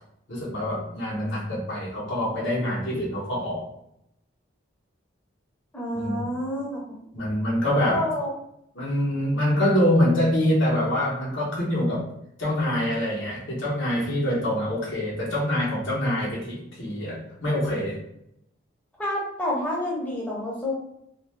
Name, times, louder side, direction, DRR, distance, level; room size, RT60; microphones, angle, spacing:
voice 1, 0.3-3.7 5.9-6.3 7.1-8.1 8.7-12.1 12.4-18.0, left 1 dB, 75° left, -5 dB, 1.0 m, -25 dB
voice 2, 5.7-7.0 7.9-8.3 19.0-20.7, left 1 dB, 5° left, -5 dB, 0.5 m, -28 dB
2.5 x 2.3 x 3.2 m, 0.76 s
head